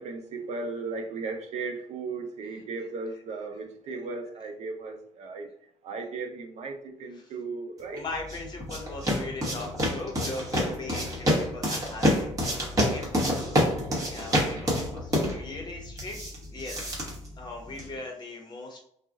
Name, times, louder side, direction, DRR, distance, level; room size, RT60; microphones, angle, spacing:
voice 1, 0.0-5.5 5.8-8.0 14.4-14.8, right 4 dB, 60° right, 5 dB, 0.5 m, -36 dB
voice 2, 7.9-13.6 14.1-16.2 16.5-16.8 17.4-18.8, left 2 dB, 35° left, 2 dB, 0.8 m, -39 dB
sound 1, 8.0-18.0, equal, 30° right, 1.0 m, -28 dB
2.3 x 2.0 x 3.6 m, 0.68 s
cardioid pair, 140°, 13 cm